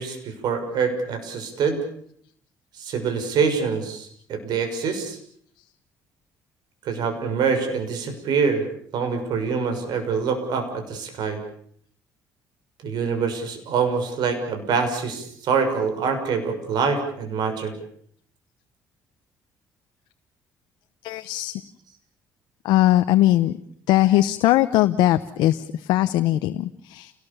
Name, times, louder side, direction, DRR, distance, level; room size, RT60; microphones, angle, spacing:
voice 1, 0.0-1.8 2.8-5.2 6.8-8.6 8.9-11.4 12.8-17.7, right 5 dB, 70° right, 6 dB, 6.4 m, -25 dB
voice 2, 21.0-21.6 22.6-23.6 23.9-27.1, left 14 dB, 90° left, 9 dB, 0.9 m, -20 dB
29.5 x 19.5 x 7.0 m, 0.63 s
cardioid pair, 105°, 7 cm